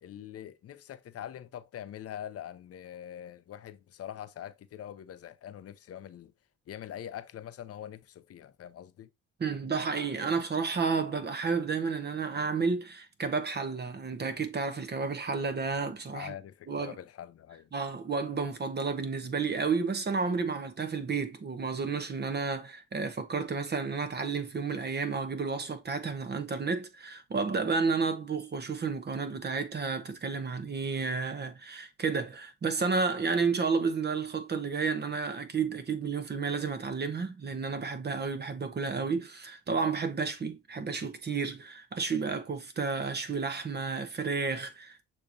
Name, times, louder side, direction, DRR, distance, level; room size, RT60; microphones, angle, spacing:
voice 1, 0.0-6.3 6.7-9.1 16.1-17.7, left 10 dB, 50° left, 0.6 m, -43 dB
voice 2, 9.4-16.3 16.7-17.0 17.7-45.0, right 4 dB, 35° right, 0.9 m, -31 dB
6.5 x 3.0 x 2.5 m
cardioid pair, 90°, 31 cm